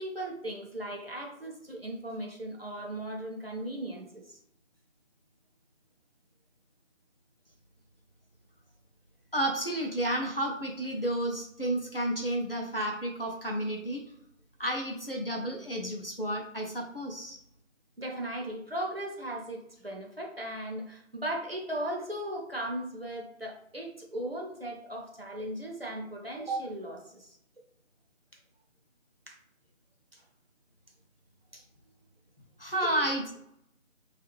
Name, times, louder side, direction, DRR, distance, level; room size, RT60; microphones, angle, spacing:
voice 1, 0.0-4.4 18.0-27.4 29.3-29.4 30.1-30.2 31.5-31.6 32.8-33.0, right 1 dB, 45° right, 0 dB, 0.6 m, -37 dB
voice 2, 9.3-14.0 14.6-17.4 32.6-33.4, right 1 dB, 45° left, 0 dB, 0.5 m, -31 dB
4.1 x 2.4 x 3.0 m, 0.74 s
figure-of-eight pair, 170°, 40 cm